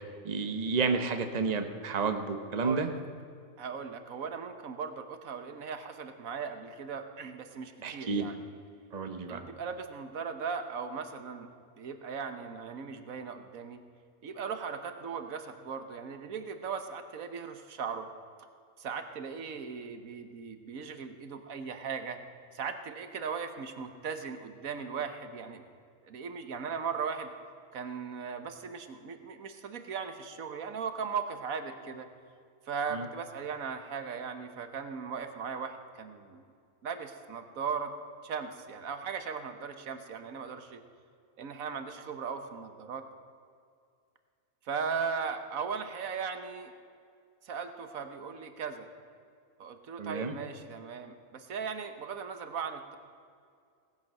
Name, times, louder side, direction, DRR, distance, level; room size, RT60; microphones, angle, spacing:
voice 1, 0.2-2.9 7.8-8.3 8.9-9.4 32.9-33.0 50.0-50.3, right 4 dB, 35° right, 7 dB, 1.1 m, -31 dB
voice 2, 2.6-3.0 3.6-8.4 9.3-11.5 11.8-13.8 14.2-18.1 18.8-22.2 22.5-25.6 26.0-27.3 27.7-32.1 32.7-36.4 36.8-37.9 38.2-40.8 41.4-43.0 44.6-46.7 47.4-48.9 49.6-53.0, right 6 dB, 85° right, 8 dB, 1.5 m, -38 dB
17.5 x 10.5 x 7.6 m, 2.3 s
omnidirectional pair, 1.4 m